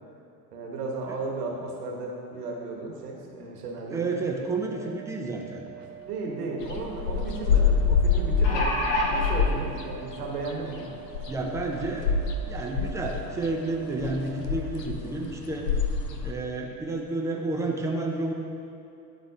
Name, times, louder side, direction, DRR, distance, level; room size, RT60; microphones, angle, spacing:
voice 1, 0.5-4.0 5.7-10.8 16.0-16.2, right 3 dB, 75° right, -1 dB, 1.2 m, -35 dB
voice 2, 3.9-5.6 11.3-15.7 16.2-18.3, right 2 dB, 5° right, 0 dB, 0.4 m, -30 dB
sound 1, 4.6-14.6, right 11 dB, 15° left, 1.4 m, -45 dB
sound 2, 6.0-6.1 6.4-6.5 8.1-9.3 10.3-10.4 10.8-10.9, left 1 dB, 50° left, 1.1 m, -27 dB
sound 3, 6.6-16.3, left 5 dB, 80° left, 0.6 m, -26 dB
10.0 x 3.9 x 2.7 m, 2.6 s
figure-of-eight pair, 70°, 48 cm